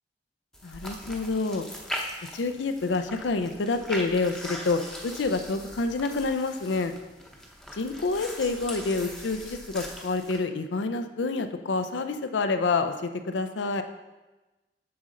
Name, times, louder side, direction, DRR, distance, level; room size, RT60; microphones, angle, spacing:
sound 1, 0.5-10.4, equal, 5° left, 0.7 m, -40 dB
voice 1, 0.6-1.7 2.3-6.9 7.7-13.8, left 3 dB, 80° left, 8 dB, 0.5 m, -28 dB
7.0 x 6.3 x 3.8 m, 1.1 s
head